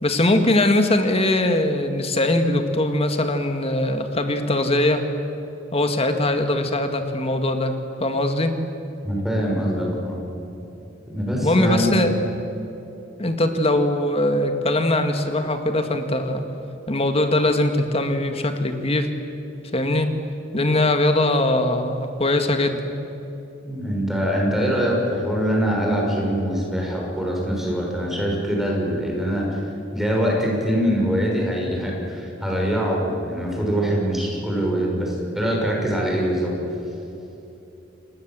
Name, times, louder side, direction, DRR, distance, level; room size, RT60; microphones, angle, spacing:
voice 1, 0.0-5.0 5.7-8.5 11.4-12.2 13.2-16.4 16.9-19.1 19.7-20.1 20.5-22.8, left 1 dB, 30° left, 6 dB, 2.0 m, -21 dB
voice 2, 9.0-10.2 11.1-12.0 23.6-29.6 29.9-36.5, equal, ahead, -2 dB, 6.3 m, -23 dB
29.5 x 19.5 x 7.7 m, 3.0 s
head